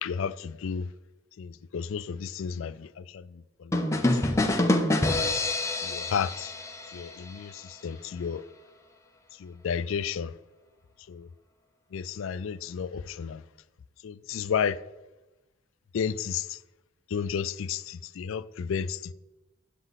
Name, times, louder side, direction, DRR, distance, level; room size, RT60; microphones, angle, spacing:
voice 1, 0.0-0.9 1.4-4.5 5.8-6.5 6.9-8.4 9.4-10.3 11.1-11.3 11.9-13.4 14.0-14.8 15.9-16.6 17.1-19.1, left 7 dB, 65° left, 0.4 m, -32 dB
sound 1, 3.7-7.4, left 1 dB, 15° left, 0.6 m, -26 dB
9.0 x 7.4 x 4.0 m
head